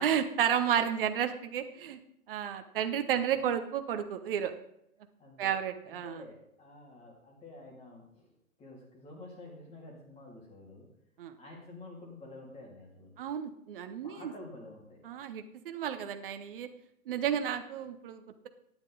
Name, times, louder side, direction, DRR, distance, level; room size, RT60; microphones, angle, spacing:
voice 1, 0.0-2.0 2.3-4.5 5.4-6.2 11.2-11.3 13.2-14.3 15.0-16.7 17.1-18.5, right 9 dB, 40° right, 8 dB, 0.9 m, -32 dB
voice 2, 2.3-2.8 3.1-3.4 5.2-5.6 5.8-8.3 8.6-10.9 11.4-13.2 14.0-15.0, left 2 dB, 15° left, -1 dB, 2.7 m, -50 dB
11.5 x 9.1 x 4.0 m, 0.76 s
figure-of-eight pair, 120°, 42 cm